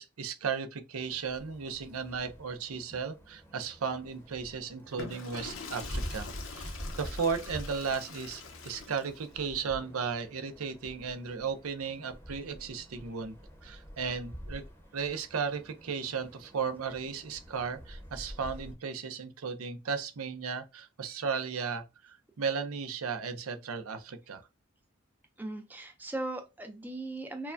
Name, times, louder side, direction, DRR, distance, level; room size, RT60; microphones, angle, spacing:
voice 1, 0.0-13.4 13.6-14.6 14.9-24.4, right 5 dB, 85° right, 0.6 m, -35 dB
sound 1, 1.0-18.7, equal, 10° left, 0.8 m, -46 dB
Water / Toilet flush, 4.8-9.3, left 5 dB, 70° left, 0.8 m, -45 dB
voice 2, 25.4-27.5, right 2 dB, 10° right, 0.5 m, -38 dB
4.5 x 2.2 x 2.5 m
head